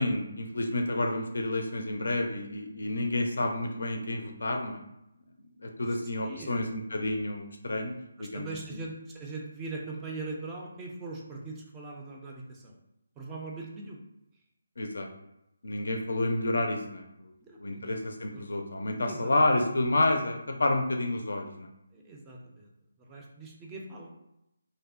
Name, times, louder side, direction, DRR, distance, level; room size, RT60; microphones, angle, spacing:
voice 1, 0.0-4.8 5.6-8.5 14.8-15.1 15.6-17.3 17.6-21.7, left 2 dB, 65° left, 4 dB, 0.4 m, -29 dB
voice 2, 6.2-6.8 8.2-12.8 13.2-14.0 17.4-17.9 18.3-18.4 19.1-19.3 21.9-22.7 23.0-24.1, right 3 dB, 15° right, -1 dB, 0.4 m, -41 dB
2.6 x 2.1 x 2.4 m, 0.84 s
figure-of-eight pair, 150°, 0 cm